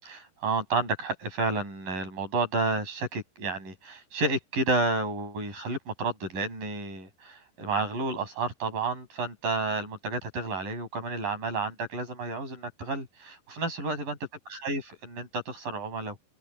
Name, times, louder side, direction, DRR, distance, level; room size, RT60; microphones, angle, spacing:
voice 1, 0.0-14.2 14.5-16.2, right 3 dB, 50° right, 8.2 m, -31 dB
open air
omnidirectional pair, 4.9 m